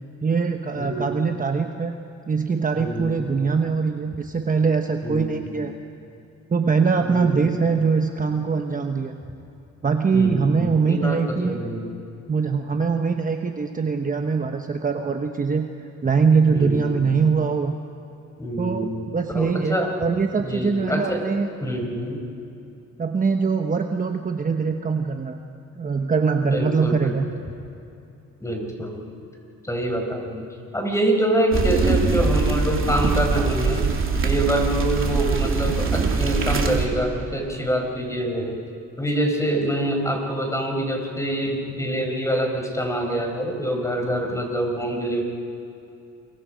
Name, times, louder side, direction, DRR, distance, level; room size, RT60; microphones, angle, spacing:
voice 1, 0.2-1.9 2.3-5.7 6.5-9.1 9.8-11.6 12.3-15.7 16.0-17.7 18.6-21.5 23.0-25.4 25.8-27.3, right 5 dB, 25° right, 5 dB, 1.1 m, -22 dB
voice 2, 0.7-1.3 2.7-3.1 5.0-5.5 7.0-7.5 10.1-11.8 16.5-17.0 18.4-19.1 19.3-19.9 20.4-21.2 21.6-22.2 26.4-27.2 28.4-29.0 29.6-30.5 30.7-33.9 34.2-38.6 39.0-45.2, right 1 dB, 10° left, 2 dB, 5.0 m, -25 dB
sound 1, 31.5-36.9, right 4 dB, 45° right, 2.9 m, -22 dB
28.5 x 23.5 x 5.2 m, 2.7 s
cardioid pair, 90°, 30 cm